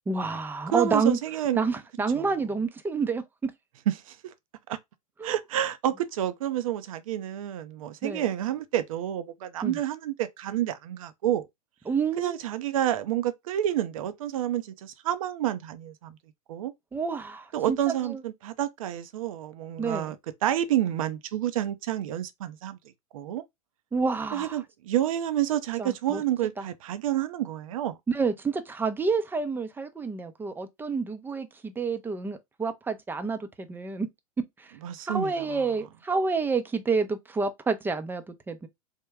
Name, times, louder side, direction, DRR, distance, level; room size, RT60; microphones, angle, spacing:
voice 1, 0.1-1.2 1.6-3.5 5.2-5.3 8.0-8.2 9.6-9.8 11.9-12.4 16.9-17.8 18.0-18.2 19.8-20.1 23.9-24.5 25.8-26.2 26.6-26.7 28.1-34.1 34.6-34.7 35.1-38.7, right 4 dB, 10° right, 0.5 m, -29 dB
voice 2, 0.7-1.7 2.1-2.2 3.9-4.2 4.7-4.8 5.2-11.5 12.2-16.2 16.5-16.7 17.5-20.2 20.4-22.8 23.1-23.4 24.3-28.0 34.8-35.6, right 12 dB, 60° right, 0.6 m, -29 dB
3.5 x 2.2 x 3.2 m
hypercardioid pair, 95°, 19 cm